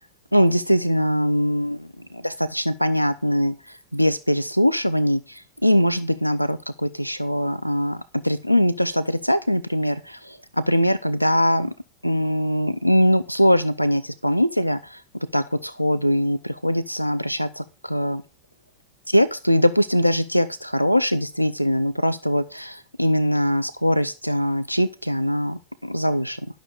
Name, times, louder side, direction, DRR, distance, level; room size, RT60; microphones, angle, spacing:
voice 1, 0.3-11.7 12.0-15.0 15.3-18.2 19.1-26.4, equal, 90° left, 0.5 m, -22 dB
11.5 x 6.2 x 6.4 m
figure-of-eight pair, 90°, 0 cm